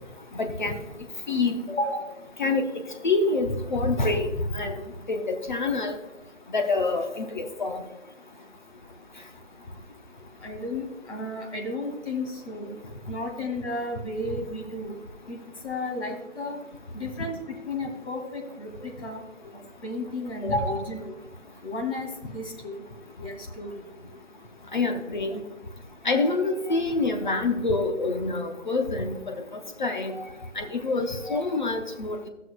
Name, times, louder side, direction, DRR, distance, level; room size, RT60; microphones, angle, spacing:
voice 1, 0.4-0.8 1.3-1.6 2.4-2.6 3.0-4.3 4.5-4.8 5.1-6.0 6.5-7.8 24.7-25.4 26.0-29.3 29.8-30.1 30.6-32.3, left 3 dB, 40° left, 5 dB, 0.7 m, -26 dB
voice 2, 1.7-2.1 10.4-12.8 13.1-14.9 15.3-16.6 16.9-19.2 19.8-21.2 21.6-22.8 23.2-23.8, left 2 dB, 65° left, 2 dB, 2.3 m, -33 dB
13.5 x 6.3 x 2.3 m, 1.0 s
hypercardioid pair, 165°, 37 cm